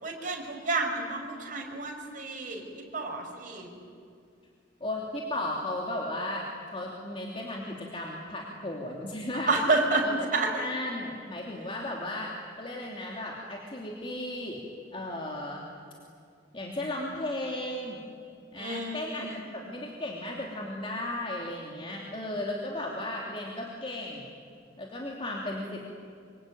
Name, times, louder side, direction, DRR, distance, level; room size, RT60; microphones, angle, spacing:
voice 1, 0.0-2.6 2.9-3.7 9.5-10.0 10.3-10.6 18.6-19.1, right 3 dB, 45° right, 1 dB, 5.3 m, -29 dB
voice 2, 4.8-9.6 10.0-10.3 10.5-12.3 12.6-14.6 14.9-15.6 16.5-18.0 18.5-24.3 24.8-25.8, left 1 dB, 30° left, -1 dB, 2.8 m, -35 dB
25.0 x 24.5 x 9.2 m, 2.3 s
head